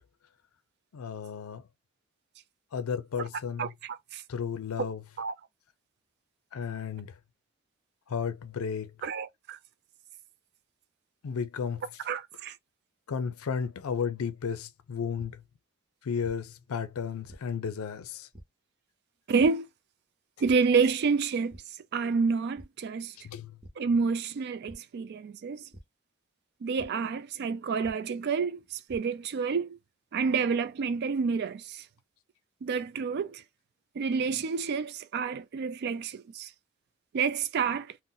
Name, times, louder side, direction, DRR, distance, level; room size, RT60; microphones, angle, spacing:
voice 1, 0.9-1.6 2.7-3.7 4.3-5.0 6.5-7.1 8.1-8.9 11.2-11.8 13.1-15.4 16.0-18.3 23.2-23.6, left 6 dB, 90° left, 0.4 m, -33 dB
voice 2, 3.6-4.2 5.2-5.3 9.0-9.6 12.0-12.6 19.3-19.7 20.4-21.6 21.9-23.1 23.8-25.6 26.6-29.8 30.1-31.8 32.6-33.4 34.0-36.5 37.1-37.9, right 5 dB, 50° right, 0.3 m, -29 dB
sound 1, 15.2-15.3 16.2-16.3 17.3-17.4 18.3-18.4 19.4-19.5 20.4-20.5 21.0-21.2 21.5-21.6 22.5-22.6 23.6-23.7 24.7-24.8 25.7-25.8 26.8-26.9 27.8-27.9 28.6-29.0, right 1 dB, 25° right, 0.8 m, -47 dB
2.6 x 2.1 x 3.8 m
head